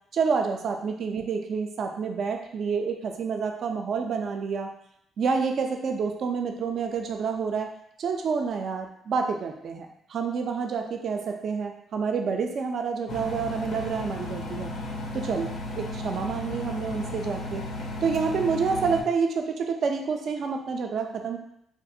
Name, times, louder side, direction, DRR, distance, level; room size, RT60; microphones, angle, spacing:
voice 1, 0.1-4.7 5.2-7.7 8.0-14.7 15.1-17.7 18.0-21.4, right 5 dB, 60° right, 4 dB, 0.3 m, -28 dB
Engine, 13.1-19.0, left 2 dB, 65° left, 0.4 m, -34 dB
2.3 x 2.1 x 2.6 m, 0.72 s
cardioid pair, 90°, 0 cm